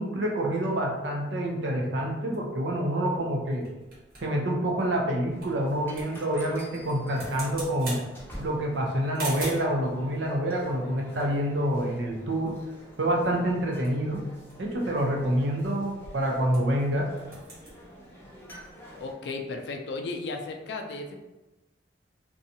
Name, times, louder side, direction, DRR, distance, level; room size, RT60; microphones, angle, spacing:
voice 1, 0.0-3.7 4.2-8.0 8.4-12.6 13.0-14.2 14.6-17.1, right 1 dB, 90° right, 0 dB, 0.6 m, -27 dB
sound 1, 2.3-9.8 10.6-12.2 12.5-12.6 12.8-13.1 13.5-16.9 17.1-17.8, right 2 dB, 55° right, 1.0 m, -44 dB
sound 2, 5.3-19.1, equal, 10° left, 0.6 m, -48 dB
voice 2, 19.0-21.2, left 3 dB, 70° left, 4 dB, 0.4 m, -35 dB
2.6 x 2.3 x 2.7 m, 1.1 s
head